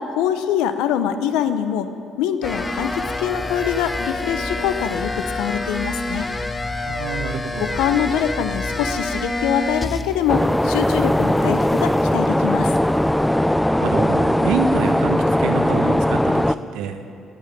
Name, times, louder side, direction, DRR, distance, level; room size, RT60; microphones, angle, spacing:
voice 1, 0.0-1.9 2.2-6.3 7.6-12.8, left 9 dB, 75° left, 11 dB, 0.8 m, -24 dB
sound 1, 2.4-10.3 10.6-12.1, left 2 dB, 25° left, 1.0 m, -28 dB
voice 2, 6.8-7.8 13.8-17.0, right 5 dB, 75° right, 7 dB, 1.1 m, -26 dB
sound 2, 10.3-16.5, left 1 dB, 5° left, 0.5 m, -19 dB
17.0 x 8.6 x 8.7 m, 2.6 s
hypercardioid pair, 50°, 0 cm